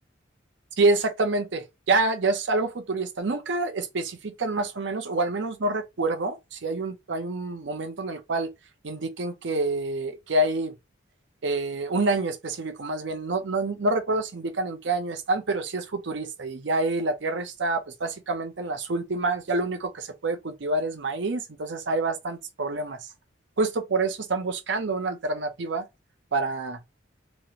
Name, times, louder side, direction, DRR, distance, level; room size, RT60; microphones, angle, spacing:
voice 1, 0.8-8.5 8.8-10.7 11.4-23.0 23.6-25.8 26.3-26.8, right 2 dB, 70° right, 0.6 m, -27 dB
3.1 x 2.5 x 2.8 m
head